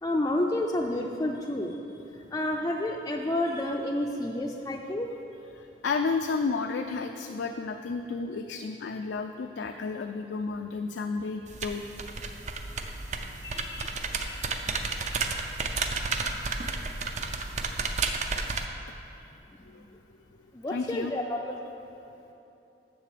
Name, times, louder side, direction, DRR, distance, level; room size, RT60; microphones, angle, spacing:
voice 1, 0.0-1.8 2.3-5.1 13.4-14.0 14.2-14.5 19.5-19.9 20.5-21.5, left 1 dB, 20° left, 0 dB, 0.4 m, -30 dB
voice 2, 5.5-11.8 18.5-18.6 19.2-19.3 19.6-19.8 20.7-21.1, left 4 dB, 85° left, 5 dB, 0.4 m, -32 dB
sound 1, 11.5-18.6, right 4 dB, 40° right, 0.5 m, -32 dB
7.7 x 6.7 x 6.7 m, 2.9 s
head